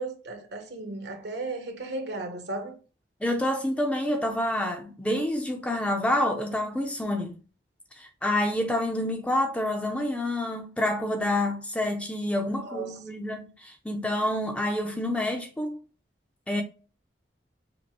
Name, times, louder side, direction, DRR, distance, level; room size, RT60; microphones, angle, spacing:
voice 1, 0.0-2.8 12.6-12.9, right 2 dB, 75° right, 0.9 m, -35 dB
voice 2, 3.2-7.3 8.0-15.8 16.5-16.6, left 1 dB, 5° left, 0.5 m, -28 dB
5.1 x 2.1 x 2.9 m
head